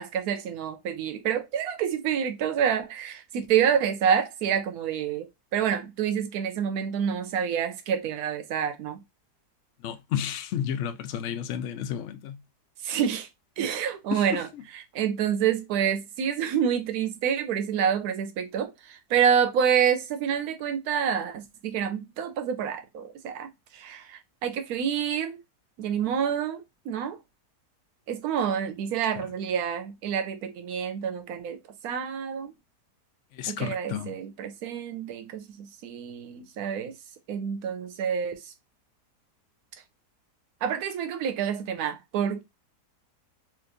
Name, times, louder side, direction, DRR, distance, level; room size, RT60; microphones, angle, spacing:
voice 1, 0.0-9.0 12.8-13.3 13.6-14.5 14.7-25.4 25.8-27.2 28.1-31.6 31.8-32.5 33.5-36.9 37.3-38.5 40.6-42.4, right 8 dB, 70° right, 1.1 m, -28 dB
voice 2, 9.8-12.4 14.1-14.6 29.2-29.3 33.3-34.2, left 9 dB, 80° left, 0.6 m, -32 dB
4.5 x 2.5 x 2.5 m
omnidirectional pair, 1.8 m